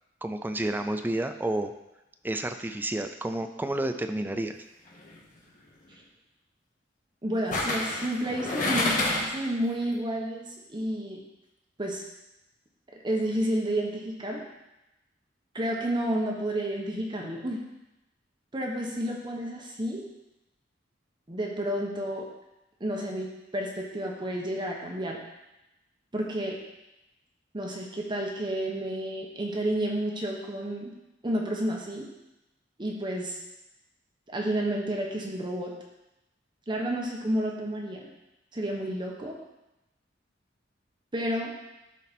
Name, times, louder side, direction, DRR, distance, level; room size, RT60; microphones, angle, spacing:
voice 1, 0.2-1.7 2.2-4.6, right 1 dB, 10° right, 7 dB, 0.4 m, -30 dB
sound 1, 4.9-5.2 7.5-9.5 9.8-9.9, left 2 dB, 45° left, 1.4 m, -28 dB
voice 2, 7.2-11.2 11.8-12.0 13.0-14.4 15.5-17.6 18.5-20.0 21.3-22.3 22.8-25.2 26.1-26.6 27.5-30.9 31.2-32.1 32.8-33.4 34.3-35.7 36.7-38.1 38.5-39.4 41.1-41.5, right 1 dB, 25° right, -1 dB, 1.1 m, -30 dB
12.0 x 4.2 x 4.2 m, 0.93 s
head